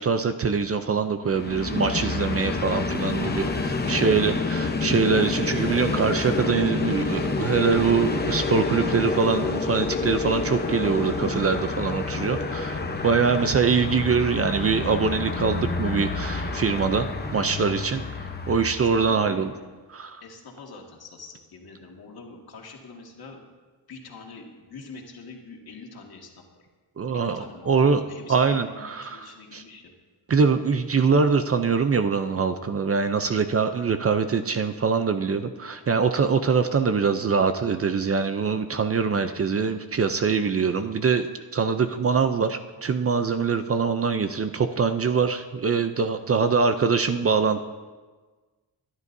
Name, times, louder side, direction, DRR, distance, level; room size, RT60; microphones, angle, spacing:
voice 1, 0.0-18.0 18.5-19.5 19.9-20.2 27.0-28.0 28.3-29.6 30.3-47.6, right 5 dB, 35° right, 9 dB, 0.5 m, -23 dB
Train, 1.2-19.4, left 3 dB, 25° left, 0.9 m, -28 dB
voice 2, 3.1-4.6 13.0-13.3 18.8-19.4 20.2-23.4 23.9-26.7 27.1-29.9 46.1-46.8, left 4 dB, 60° left, 1 dB, 2.0 m, -45 dB
21.5 x 11.0 x 2.7 m, 1.3 s
wide cardioid pair, 140°, 42 cm